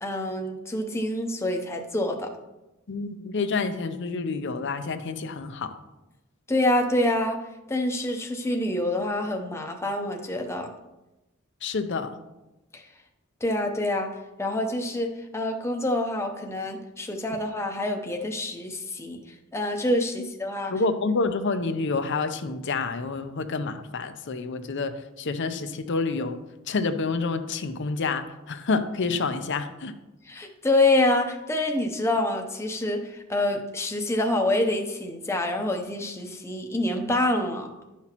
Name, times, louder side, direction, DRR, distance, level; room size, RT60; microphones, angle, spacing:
voice 1, 0.0-2.3 6.5-7.4 7.7-10.7 12.7-12.8 13.4-14.1 14.4-19.2 19.5-20.7 30.3-37.7, left 1 dB, 15° left, 3 dB, 0.7 m, -26 dB
voice 2, 2.9-5.7 11.6-12.1 20.7-24.9 25.2-26.4 26.7-29.9, left 4 dB, 60° left, 9 dB, 0.6 m, -28 dB
11.0 x 5.8 x 3.0 m, 1.0 s
head